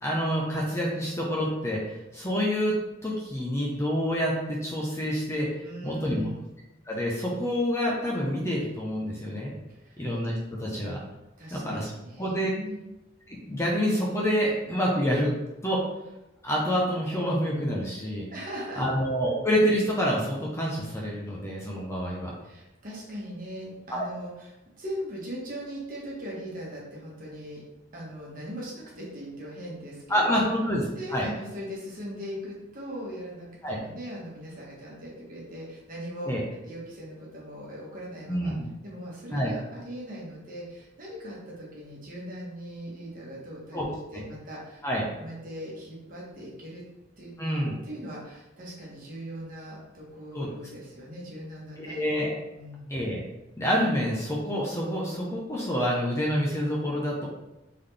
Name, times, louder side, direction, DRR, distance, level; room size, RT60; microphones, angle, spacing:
voice 1, 0.0-2.7 3.0-5.5 5.8-6.2 6.9-9.5 10.0-11.0 11.5-11.9 12.2-12.5 13.3-15.3 15.6-15.8 16.4-18.3 18.8-22.3 23.9-24.1 30.1-30.8 31.1-31.3 33.6-33.8 36.3-36.4 38.3-38.7 39.3-39.5 43.7-43.9 44.1-44.2 44.8-45.0 47.4-47.7 50.3-50.5 51.8-52.3 52.9-53.2 53.6-57.3, equal, 15° left, -4 dB, 0.7 m, -27 dB
voice 2, 5.6-6.4 9.7-10.0 11.4-12.8 18.3-18.9 22.4-24.5 24.8-27.6 27.9-30.5 30.9-36.3 36.6-38.5 38.8-44.8 45.2-46.8 47.2-47.3 47.6-52.1 52.5-52.9, equal, 45° right, -5 dB, 1.3 m, -40 dB
4.0 x 3.7 x 3.4 m, 0.96 s
head